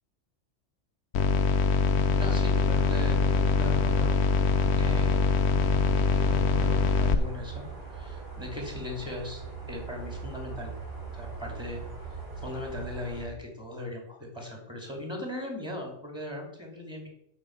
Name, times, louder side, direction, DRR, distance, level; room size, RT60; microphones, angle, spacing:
sound 1, 1.1-7.2, left 4 dB, 65° left, 0.9 m, -24 dB
voice 1, 2.1-4.1 4.8-5.2 5.9-9.4 9.7-10.7 11.1-11.8 12.4-17.1, left 2 dB, 5° right, -1 dB, 2.9 m, -38 dB
sound 2, 2.7-13.3, right 5 dB, 40° right, 3.4 m, -41 dB
8.7 x 4.9 x 7.3 m, 0.72 s
omnidirectional pair, 1.3 m